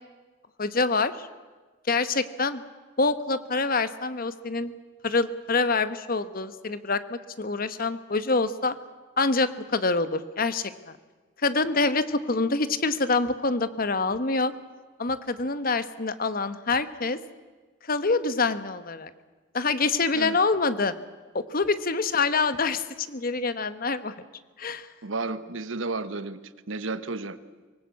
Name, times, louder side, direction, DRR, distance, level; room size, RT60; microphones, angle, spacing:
voice 1, 0.6-1.3 1.9-2.6 3.0-4.7 5.0-8.7 9.2-11.0 11.4-14.5 15.0-17.2 17.9-19.1 19.5-20.9 21.3-24.1 24.6-24.9, left 3 dB, 45° left, 12 dB, 1.1 m, -26 dB
voice 2, 25.0-26.4 26.7-27.4, right 3 dB, 80° right, 12 dB, 1.2 m, -32 dB
24.0 x 19.5 x 8.4 m, 1.3 s
head